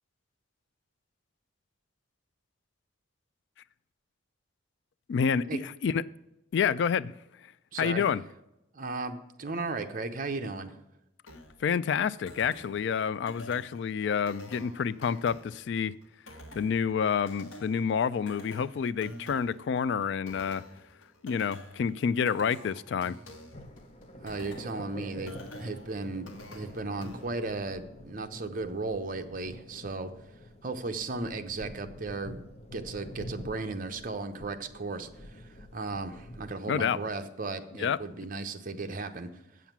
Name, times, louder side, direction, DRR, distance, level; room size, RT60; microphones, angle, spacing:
voice 1, 5.1-6.0 6.5-7.1 7.8-8.2 11.6-15.9 16.5-20.6 21.2-23.2 36.7-37.0 37.8-38.0, left 6 dB, 60° left, 18 dB, 0.3 m, -28 dB
voice 2, 7.7-8.0 8.7-10.7 24.2-30.1 30.6-32.4 32.7-35.4 35.7-39.3, right 3 dB, 45° right, 7 dB, 0.8 m, -35 dB
sound 1, 11.3-27.3, left 1 dB, 85° left, 1.3 m, -49 dB
sound 2, 23.5-36.5, left 1 dB, 30° left, 0.8 m, -47 dB
8.0 x 7.3 x 6.0 m, 0.90 s
head